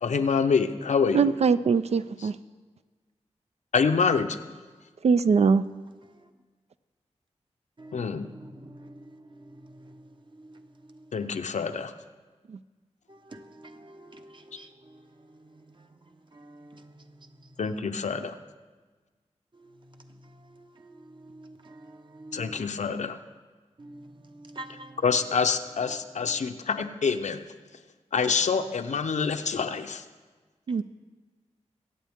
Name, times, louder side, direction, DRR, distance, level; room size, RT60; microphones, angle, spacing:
voice 1, 0.0-1.3 2.2-2.3 3.7-4.4 7.9-8.2 11.1-11.9 17.6-18.4 22.3-23.2 25.0-27.4 28.1-30.0, left 5 dB, 80° left, 0.7 m, -26 dB
voice 2, 1.1-2.4 5.0-5.6 12.5-12.6 30.7-30.8, right 5 dB, 65° right, 0.4 m, -22 dB
voice 3, 7.8-8.1 8.9-10.0 10.4-10.6 10.9-11.0 13.1-15.0 16.3-16.9 20.4-22.6 23.8-25.0, right 1 dB, 40° right, 1.0 m, -47 dB
23.0 x 8.5 x 3.6 m
wide cardioid pair, 90°, 12 cm